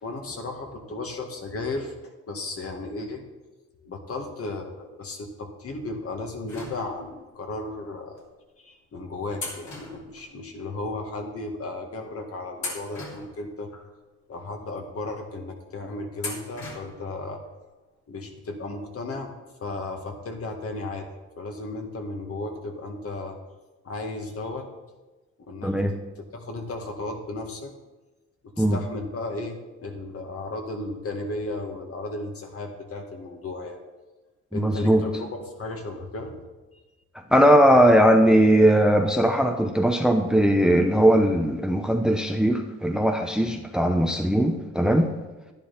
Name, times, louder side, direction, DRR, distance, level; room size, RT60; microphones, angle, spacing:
voice 1, 0.0-3.2 3.8-8.3 8.6-13.7 14.3-17.4 18.1-19.3 19.6-21.1 21.4-23.4 23.8-24.7 25.5-27.7 28.4-33.8 34.5-36.4, left 2 dB, 50° left, 3 dB, 1.9 m, -35 dB
sound 1, 6.5-7.3 8.1-8.3 9.4-10.8 11.1-11.2 11.9-12.1 12.6-13.9 14.4-14.5 16.2-17.1 17.4-17.5 18.7-18.8 19.1-19.2, left 3 dB, 65° left, 3.2 m, -39 dB
voice 2, 25.6-25.9 28.6-28.8 34.5-35.1 37.3-45.1, equal, ahead, 5 dB, 0.8 m, -19 dB
11.0 x 10.5 x 4.3 m, 1.1 s
cardioid pair, 90°, 30 cm